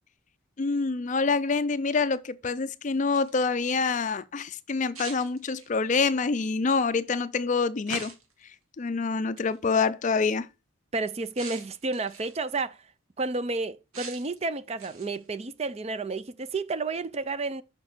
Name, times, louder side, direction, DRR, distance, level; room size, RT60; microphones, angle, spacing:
voice 1, 0.6-8.1 8.8-10.5, left 4 dB, 35° left, 0.4 m, -26 dB
sound 1, 2.9-3.5 4.9-5.9 7.9-8.4 9.4-9.6 11.4-12.4 13.9-14.4 14.8-15.3, right 4 dB, 90° right, 2.5 m, -42 dB
voice 2, 10.9-12.8 13.2-17.6, right 3 dB, 30° right, 0.4 m, -31 dB
6.3 x 5.9 x 6.5 m
head